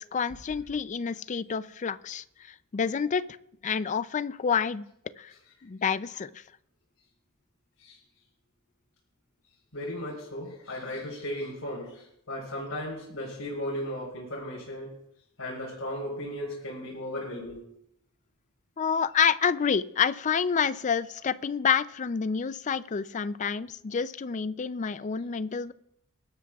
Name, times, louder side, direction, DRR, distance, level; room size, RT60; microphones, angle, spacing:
voice 1, 0.0-3.2 3.6-4.8 5.2-5.3 5.6-6.4 18.8-25.7, left 6 dB, 35° left, 16 dB, 0.4 m, -28 dB
voice 2, 9.7-14.9 15.4-17.6, left 1 dB, 85° left, -4 dB, 4.1 m, -36 dB
21.5 x 12.0 x 2.4 m, 0.75 s
head